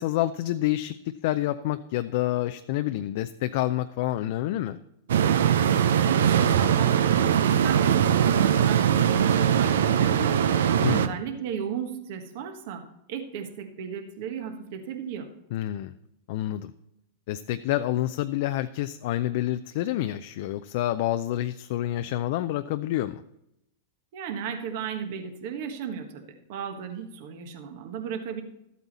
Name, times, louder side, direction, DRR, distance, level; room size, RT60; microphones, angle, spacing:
voice 1, 0.0-4.8 10.8-11.1 15.5-15.9 16.3-16.7 17.3-23.2, left 14 dB, 60° left, 10 dB, 0.4 m, -28 dB
sound 1, 5.1-11.1, right 9 dB, 80° right, 0.6 m, -21 dB
voice 2, 6.1-10.6 10.9-15.3 24.1-28.4, right 7 dB, 60° right, 6 dB, 1.4 m, -35 dB
12.5 x 8.2 x 4.1 m, 0.84 s
hypercardioid pair, 115°, 0 cm